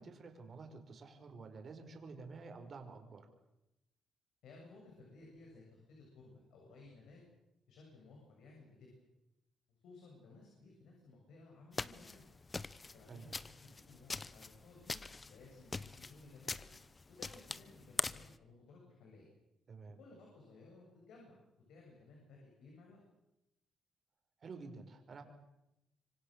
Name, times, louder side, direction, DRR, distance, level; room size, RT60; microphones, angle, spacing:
voice 1, 0.0-3.3 13.1-13.3 19.7-20.0 24.4-25.2, right 4 dB, 45° right, 5 dB, 5.0 m, -50 dB
voice 2, 4.4-7.2 7.7-8.9 9.7-12.3 12.9-16.7 17.1-19.3 20.0-23.0, left 3 dB, 80° left, -1 dB, 7.6 m, -58 dB
sound 1, 11.7-18.4, left 3 dB, 25° left, 0.9 m, -43 dB
26.0 x 24.5 x 6.7 m, 0.92 s
cardioid pair, 90°, 0 cm